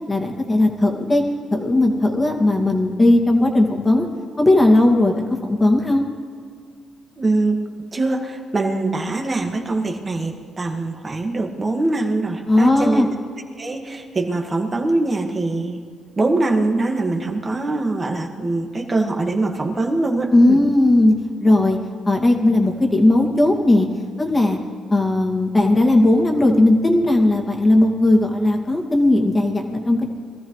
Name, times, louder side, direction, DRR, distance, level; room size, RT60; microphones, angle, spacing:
voice 1, 0.1-1.2 1.5-4.1 4.4-6.0 12.5-13.1 20.3-21.1 21.4-21.8 22.1-23.9 24.2-24.6 24.9-30.1, left 1 dB, 20° left, 1 dB, 2.2 m, -17 dB
voice 2, 7.2-7.6 7.9-13.1 13.6-15.8 16.2-20.6, right 2 dB, 30° right, 2 dB, 1.8 m, -23 dB
23.0 x 14.0 x 3.2 m, 2.1 s
cardioid pair, 90°, 0 cm